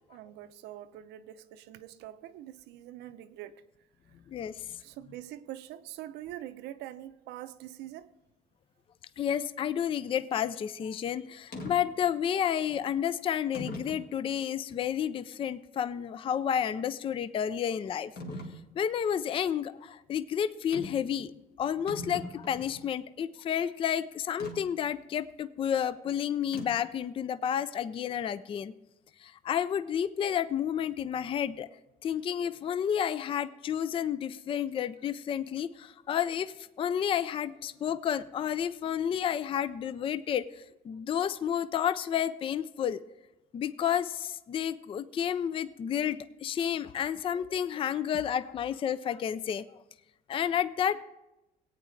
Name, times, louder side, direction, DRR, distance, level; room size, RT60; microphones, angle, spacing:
voice 1, 0.1-3.6 4.1-4.2 4.8-8.1, right 13 dB, 85° right, 0.6 m, -44 dB
voice 2, 4.3-4.8 9.2-18.1 18.8-21.3 21.6-28.7 29.2-31.7 32.0-43.0 43.5-49.6 50.3-51.0, left 9 dB, 30° left, 0.4 m, -31 dB
sound 1, 11.5-11.8 12.7-12.8 13.5-14.1 14.7-14.8 18.2-18.6 20.7-21.1 21.4-21.5 21.7-22.8 24.4-24.6 26.5-26.9, left 2 dB, 60° left, 1.9 m, -40 dB
18.5 x 9.0 x 3.2 m
cardioid pair, 110°, 17 cm